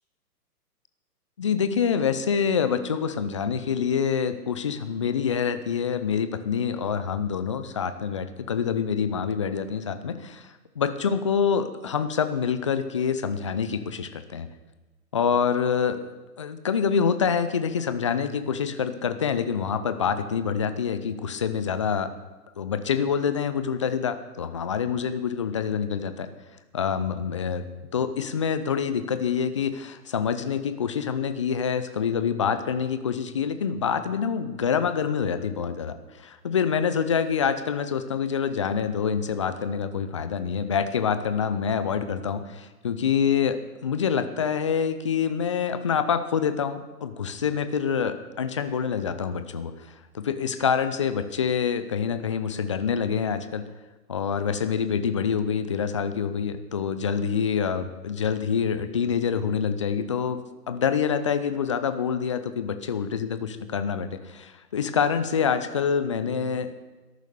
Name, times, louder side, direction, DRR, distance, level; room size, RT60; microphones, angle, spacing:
voice 1, 1.4-10.5 10.8-14.5 15.1-16.1 16.4-22.1 22.6-26.3 26.7-27.6 27.9-43.6 43.8-49.7 50.1-53.6 54.1-66.9, left 7 dB, 20° left, 11 dB, 0.5 m, -26 dB
13.5 x 11.5 x 6.6 m, 1.2 s
figure-of-eight pair, 130°, 48 cm